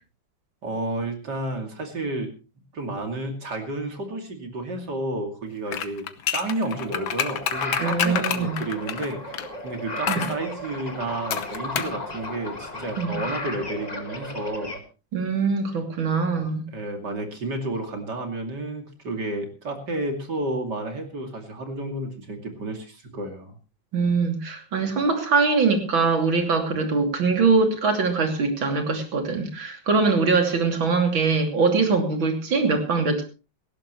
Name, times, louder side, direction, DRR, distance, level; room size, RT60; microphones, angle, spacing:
voice 1, 0.6-2.3 2.7-6.1 6.3-14.8 16.3-23.6, right 2 dB, 60° right, 4 dB, 3.2 m, -31 dB
sound 1, 5.7-9.5 10.1-10.4 11.3-12.0 12.2-12.3, left 9 dB, 85° left, 1.9 m, -28 dB
sound 2, 6.8-14.8, left 2 dB, 20° left, 1.8 m, -35 dB
voice 2, 7.8-8.6 10.1-10.3 13.0-13.2 15.1-16.6 23.9-33.2, right 4 dB, 85° right, 4 dB, 3.6 m, -22 dB
18.5 x 16.0 x 3.1 m, 0.32 s
omnidirectional pair, 2.1 m